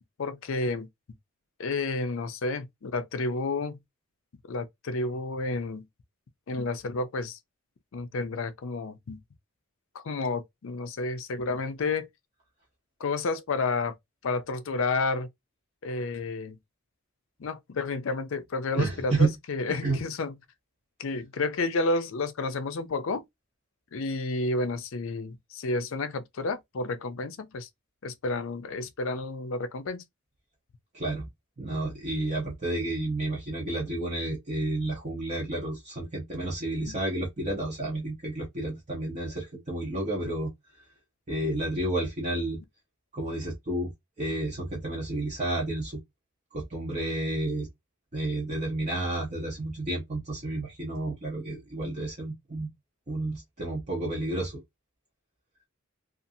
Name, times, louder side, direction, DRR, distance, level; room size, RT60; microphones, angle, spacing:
voice 1, 0.2-0.9 1.6-3.8 4.5-5.9 6.5-7.4 7.9-9.2 9.9-12.1 13.0-14.0 14.2-15.3 15.8-16.6 17.4-20.3 21.0-23.2 23.9-27.7 28.0-30.0 36.8-37.0, left 3 dB, 60° left, 0.4 m, -31 dB
voice 2, 18.8-19.3 19.8-20.0 30.9-31.3 31.6-40.5 41.3-42.6 43.1-43.9 44.2-46.0 46.5-47.7 48.1-52.7 53.1-54.6, right 2 dB, 30° right, 0.7 m, -31 dB
2.6 x 2.4 x 2.6 m
head